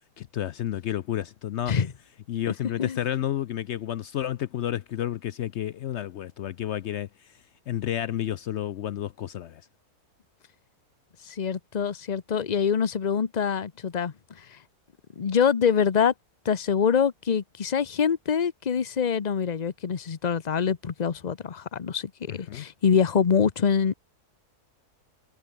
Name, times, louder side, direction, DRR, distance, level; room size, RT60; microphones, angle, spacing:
voice 1, 0.2-1.8 2.3-7.3 7.7-9.6 22.3-22.7, left 11 dB, 70° left, 0.7 m, -31 dB
voice 2, 11.3-14.1 15.2-16.1 16.4-23.9, left 7 dB, 35° left, 0.8 m, -25 dB
omnidirectional pair, 1.6 m